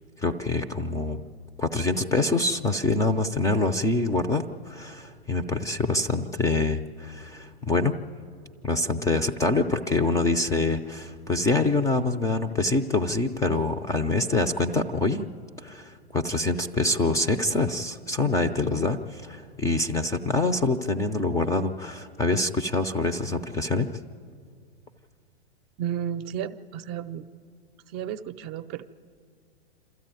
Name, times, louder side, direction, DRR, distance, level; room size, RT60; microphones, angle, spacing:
voice 1, 0.2-1.2 1.6-7.9 8.6-15.3 15.6-23.9, left 2 dB, 10° left, 10 dB, 0.5 m, -25 dB
voice 2, 25.8-27.2 27.9-28.8, right 9 dB, 35° right, 10 dB, 0.7 m, -32 dB
27.0 x 13.5 x 9.1 m, 2.2 s
hypercardioid pair, 115°, 33 cm